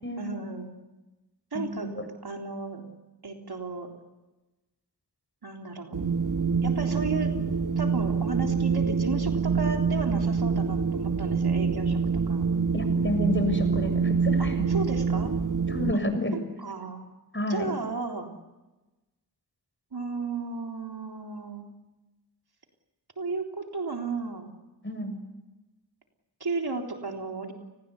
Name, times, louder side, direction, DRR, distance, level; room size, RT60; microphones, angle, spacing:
voice 1, 0.2-0.7 1.5-1.9 2.2-2.8 3.2-3.9 5.4-6.0 6.6-7.3 7.8-12.0 12.3-12.4 14.4-15.3 16.6-17.1 17.5-18.3 19.9-21.7 23.2-24.5 26.4-27.5, right 4 dB, 70° right, 3 dB, 3.7 m, -34 dB
voice 2, 1.5-2.1 12.7-14.6 15.7-16.3 17.3-17.7 24.8-25.2, left 1 dB, 30° left, 7 dB, 6.8 m, -30 dB
Wind, 5.9-15.9, right 5 dB, 50° right, 1.3 m, -26 dB
30.0 x 20.0 x 8.5 m, 1.1 s
cardioid pair, 40°, 41 cm